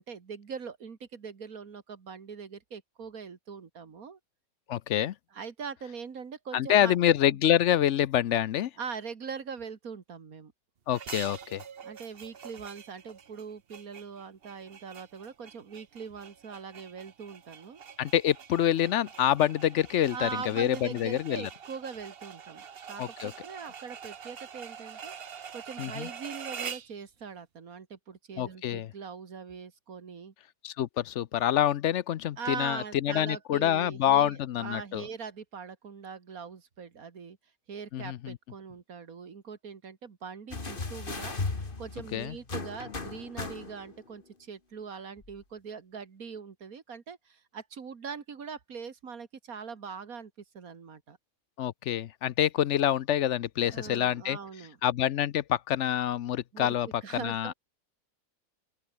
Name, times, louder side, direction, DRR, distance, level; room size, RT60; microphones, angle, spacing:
voice 1, 0.0-4.2 5.3-7.0 7.2-7.4 8.8-10.5 11.8-17.8 20.1-25.1 25.5-30.3 32.4-37.4 37.7-51.2 53.6-54.8 56.5-57.5, right 6 dB, 85° right, 2.3 m, -42 dB
voice 2, 4.7-5.1 6.5-8.7 10.9-11.6 18.0-21.5 23.0-23.3 25.8-26.1 28.4-28.9 30.6-35.0 37.9-38.4 42.1-42.3 51.6-54.4 54.8-56.9 57.1-57.5, left 11 dB, 65° left, 0.9 m, -26 dB
sound 1, 10.9-27.0, right 7 dB, 45° right, 1.1 m, -45 dB
sound 2, 40.5-44.0 45.2-45.3, left 3 dB, 40° left, 2.3 m, -36 dB
open air
omnidirectional pair, 1.5 m